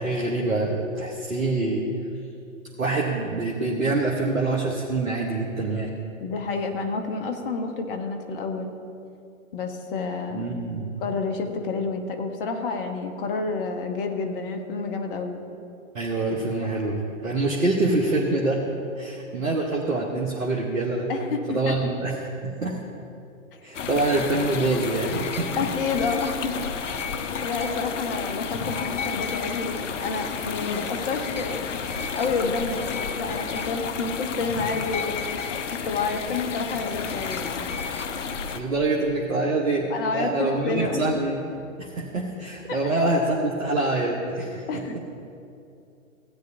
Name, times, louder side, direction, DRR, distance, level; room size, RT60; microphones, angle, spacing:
voice 1, 0.0-1.9 2.8-5.9 10.3-10.9 15.9-18.7 19.0-21.1 21.5-22.2 22.4-22.8 23.6-25.5 38.5-39.9 40.1-44.8, right 2 dB, 80° right, -2 dB, 1.2 m, -25 dB
voice 2, 6.2-8.7 9.5-10.5 11.0-15.4 21.1-21.8 23.5-23.6 25.6-26.6 26.9-27.1 27.4-31.6 32.1-35.6 35.8-37.6 39.9-41.1 42.7-42.9 44.7-45.0, left 4 dB, 40° left, 5 dB, 1.1 m, -29 dB
sound 1, 23.7-38.6, left 6 dB, 65° left, 0.7 m, -31 dB
16.0 x 9.2 x 2.7 m, 2.6 s
figure-of-eight pair, 120°, 41 cm